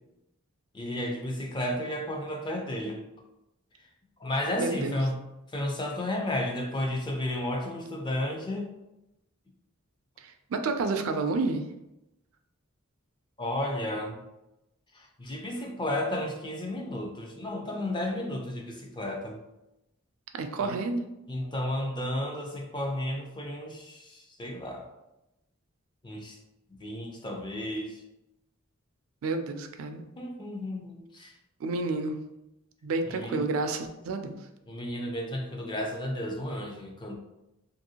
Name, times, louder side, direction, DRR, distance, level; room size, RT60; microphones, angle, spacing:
voice 1, 0.7-3.0 4.2-5.1 5.5-8.7 13.4-14.2 14.9-19.4 20.6-20.7 21.3-24.9 26.0-26.4 26.7-28.0 30.2-31.3 33.1-33.4 34.7-37.2, left 1 dB, 20° left, 1 dB, 0.5 m, -33 dB
voice 2, 4.6-5.0 10.2-11.6 20.3-21.0 29.2-30.0 31.6-32.2 32.8-34.4, right 3 dB, 75° right, 7 dB, 0.4 m, -30 dB
2.9 x 2.6 x 2.8 m, 0.91 s
head